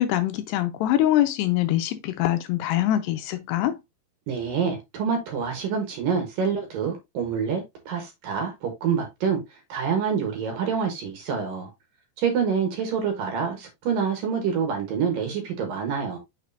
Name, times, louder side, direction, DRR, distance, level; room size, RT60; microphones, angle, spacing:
voice 1, 0.0-3.8, left 13 dB, 80° left, 2.6 m, -23 dB
voice 2, 4.3-11.7 12.2-16.2, right 6 dB, 65° right, 2.5 m, -27 dB
6.3 x 6.3 x 2.6 m
omnidirectional pair, 5.1 m